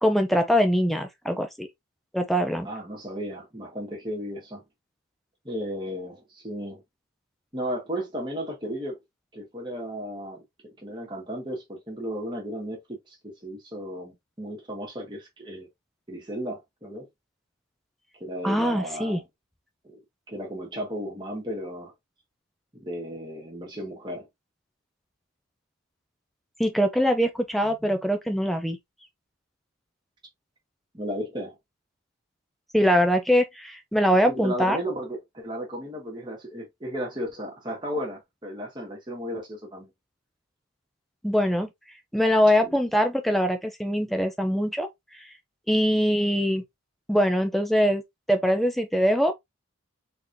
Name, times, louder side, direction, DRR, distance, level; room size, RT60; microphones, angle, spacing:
voice 1, 0.0-1.7 2.1-2.7 18.4-19.2 26.6-28.8 32.7-34.8 41.2-41.7 42.1-44.9 45.7-46.6 47.1-48.0 48.3-49.3, equal, ahead, 0.4 m, -22 dB
voice 2, 2.6-4.6 5.4-6.8 7.5-9.0 9.3-15.7 16.1-17.1 18.2-19.2 19.8-20.0 20.3-21.9 22.7-24.3 30.9-31.6 34.1-39.9 42.6-42.8, equal, 20° right, 1.5 m, -34 dB
3.9 x 3.1 x 2.6 m
head